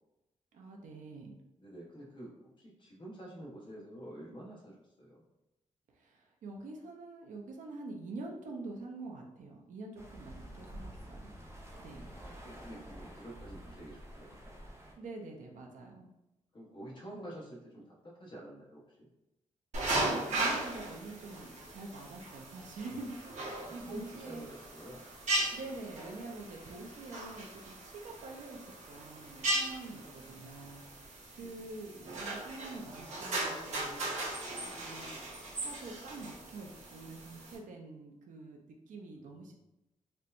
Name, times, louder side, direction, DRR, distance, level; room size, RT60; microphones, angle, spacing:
voice 1, 0.5-1.3 5.9-11.3 11.8-12.1 15.0-16.1 20.0-23.1 23.4-24.5 25.5-30.8 31.3-35.3 35.5-39.6, right 3 dB, 80° right, 1 dB, 0.5 m, -46 dB
voice 2, 1.6-5.2 12.1-14.4 16.5-19.1 23.6-25.0 26.8-27.0 28.0-28.3 30.0-30.6 31.4-31.6 39.2-39.6, right 1 dB, 40° left, -4 dB, 1.0 m, -49 dB
sound 1, 10.0-14.9, right 1 dB, 20° right, 0.5 m, -49 dB
sound 2, 19.7-37.6, right 2 dB, 65° right, 1.0 m, -38 dB
4.4 x 2.2 x 2.5 m, 0.94 s
wide cardioid pair, 155°, 13 cm